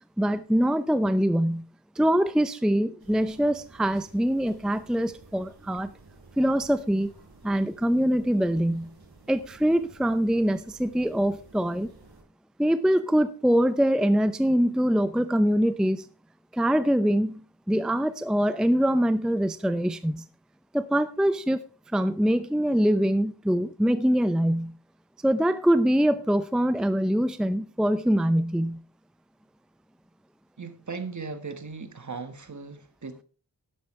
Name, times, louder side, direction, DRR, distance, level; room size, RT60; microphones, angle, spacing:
voice 1, 0.2-1.6 2.0-5.9 6.4-7.1 7.4-8.9 9.3-11.9 12.6-16.1 16.5-17.4 17.7-20.2 20.7-21.6 21.9-24.7 25.2-28.8, equal, ahead, 0.6 m, -24 dB
sound 1, 3.0-12.2, right 3 dB, 65° right, 4.3 m, -53 dB
voice 2, 30.6-33.2, right 4 dB, 45° right, 1.5 m, -37 dB
12.5 x 10.5 x 3.2 m
wide cardioid pair, 75°, 41 cm